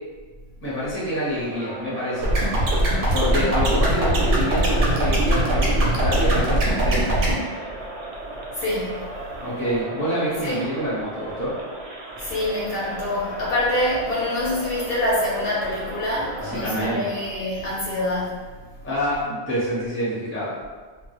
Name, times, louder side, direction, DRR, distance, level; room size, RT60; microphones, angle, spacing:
voice 1, 0.6-2.3 3.1-7.2 9.4-11.5 16.4-17.1 18.8-20.6, equal, 15° left, -9 dB, 0.6 m, -27 dB
Crowd, 1.2-17.5, right 2 dB, 90° right, 0.9 m, -36 dB
sound 1, 2.2-7.3, right 1 dB, 60° right, 0.7 m, -20 dB
voice 2, 8.5-9.0 10.4-10.6 12.2-18.4, left 1 dB, 60° left, -7 dB, 0.8 m, -25 dB
2.2 x 2.0 x 2.9 m, 1.4 s
omnidirectional pair, 1.2 m